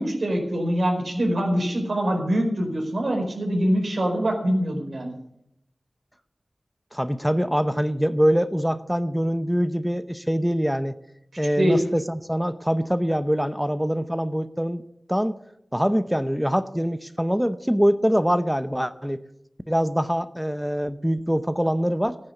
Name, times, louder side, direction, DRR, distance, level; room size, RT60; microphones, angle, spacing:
voice 1, 0.0-5.2 11.6-11.8, equal, 85° right, 1 dB, 4.8 m, -24 dB
voice 2, 6.9-10.9 11.4-14.8 15.1-15.3 15.7-19.2 19.7-22.2, equal, 5° right, 12 dB, 0.7 m, -24 dB
15.0 x 9.7 x 8.2 m, 0.78 s
wide cardioid pair, 60°, 0 cm